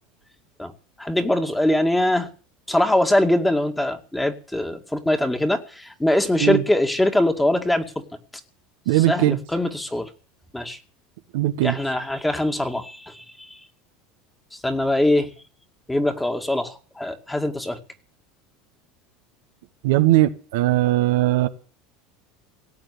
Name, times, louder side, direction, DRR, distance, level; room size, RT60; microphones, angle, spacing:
voice 1, 1.0-2.3 2.7-7.9 8.9-10.1 10.5-10.8 11.6-13.2 14.6-15.3 15.9-17.8, left 1 dB, 10° left, 5 dB, 2.3 m, -22 dB
voice 2, 8.9-9.4 11.3-11.7 19.8-21.5, right 16 dB, 80° right, 8 dB, 1.1 m, -19 dB
18.0 x 8.2 x 8.4 m, 0.41 s
supercardioid pair, 100°, 0 cm